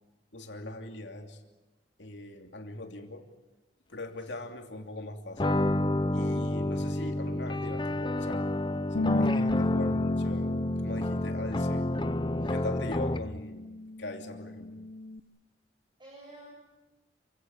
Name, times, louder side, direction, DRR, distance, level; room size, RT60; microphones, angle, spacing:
voice 1, 0.3-1.4 2.0-3.3 3.9-5.6 6.1-8.4 8.9-11.9 12.5-14.8, left 1 dB, 90° left, 4 dB, 2.9 m, -41 dB
sound 1, 5.4-13.4, left 1 dB, 25° left, 0.8 m, -30 dB
Bass guitar, 9.0-15.2, left 2 dB, 60° left, 0.8 m, -33 dB
voice 2, 16.0-16.5, right 1 dB, 25° right, -2 dB, 7.4 m, -51 dB
28.0 x 16.5 x 9.9 m, 1.1 s
head